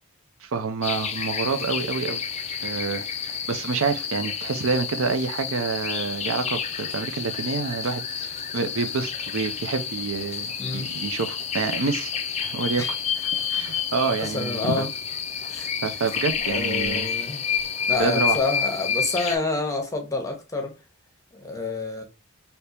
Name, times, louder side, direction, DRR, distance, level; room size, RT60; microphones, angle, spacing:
voice 1, 0.4-2.2 2.6-12.1 12.4-12.9 13.5-14.9 15.8-17.1 18.0-18.4, right 4 dB, 70° right, 0.5 m, -27 dB
sound 1, 0.8-19.4, left 7 dB, 30° left, 0.4 m, -29 dB
voice 2, 10.6-10.9 12.8-12.9 14.2-14.9 15.5-15.7 16.5-17.4 17.9-20.7 21.3-22.0, left 3 dB, 15° left, 0.8 m, -28 dB
3.4 x 2.8 x 2.8 m
head